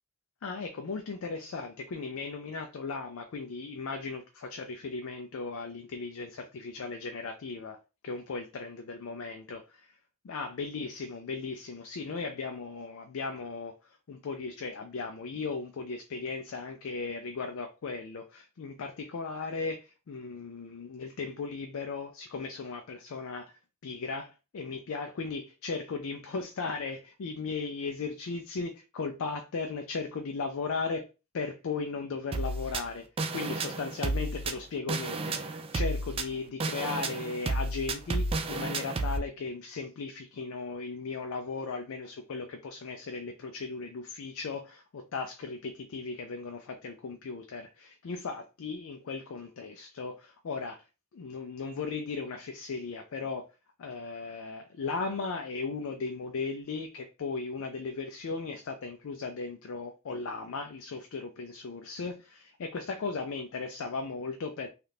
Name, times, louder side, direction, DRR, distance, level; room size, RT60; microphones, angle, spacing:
voice 1, 0.4-7.8 8.0-10.0 10.2-23.5 23.8-31.1 31.3-33.1 33.3-50.8 51.1-53.5 53.8-64.7, left 4 dB, 70° left, 0.4 m, -37 dB
sound 1, 32.3-39.2, right 2 dB, 25° right, 0.3 m, -32 dB
3.4 x 2.4 x 2.7 m
head